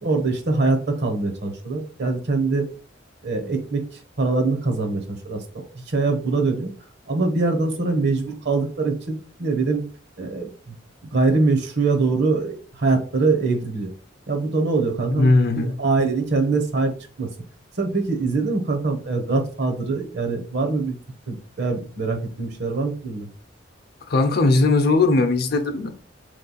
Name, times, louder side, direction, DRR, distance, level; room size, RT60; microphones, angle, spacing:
voice 1, 0.0-2.7 3.2-3.8 4.2-5.4 5.7-6.7 7.1-9.8 10.2-10.8 11.1-13.9 14.3-15.3 15.6-17.3 17.8-21.0 21.3-23.3, right 3 dB, 60° right, 1.1 m, -23 dB
voice 2, 15.2-15.7 24.1-25.9, left 3 dB, 55° left, 0.7 m, -18 dB
3.7 x 3.3 x 4.0 m
head